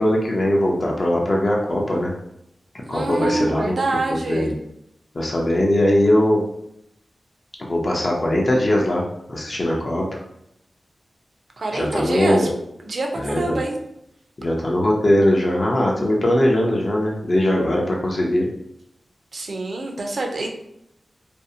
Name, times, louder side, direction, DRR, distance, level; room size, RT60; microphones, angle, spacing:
voice 1, 0.0-2.1 2.9-3.8 4.3-4.5 5.1-6.4 7.6-10.2 11.7-12.5 13.1-13.6 14.4-18.5, left 1 dB, 45° left, -2 dB, 0.5 m, -20 dB
voice 2, 2.9-4.5 11.6-12.5 12.8-13.8 19.3-20.5, right 2 dB, 65° right, 1 dB, 0.4 m, -26 dB
2.5 x 2.0 x 2.6 m, 0.79 s
wide cardioid pair, 75°, 0 cm